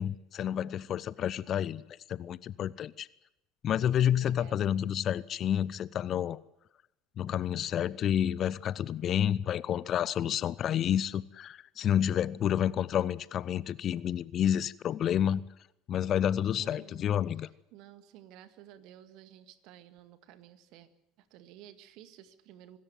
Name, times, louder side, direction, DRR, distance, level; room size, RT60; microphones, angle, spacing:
voice 1, 0.0-1.8 2.1-3.1 3.6-6.4 7.2-15.4 15.9-17.5, left 10 dB, 45° left, 0.7 m, -29 dB
voice 2, 3.8-5.1 16.6-20.9 21.2-22.8, right 11 dB, 60° right, 1.8 m, -54 dB
24.5 x 13.0 x 9.4 m
hypercardioid pair, 70°, 0 cm